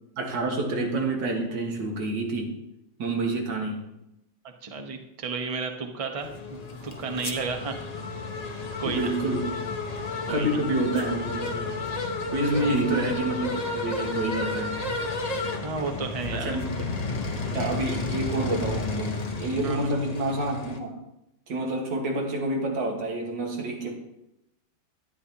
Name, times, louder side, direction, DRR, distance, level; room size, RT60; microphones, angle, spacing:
voice 1, 0.2-2.6 3.0-3.9 8.8-9.5 10.3-11.7 12.3-14.9 16.3-16.9 17.5-21.0 21.5-24.0, right 2 dB, 70° right, 1 dB, 2.2 m, -28 dB
voice 2, 4.6-7.7 8.8-9.1 10.3-10.5 12.6-12.8 15.6-16.6 19.6-20.0, right 4 dB, 50° right, 4 dB, 0.4 m, -33 dB
sound 1, 6.2-20.8, left 3 dB, 55° left, 0.4 m, -32 dB
12.0 x 9.6 x 2.8 m, 0.87 s
omnidirectional pair, 2.1 m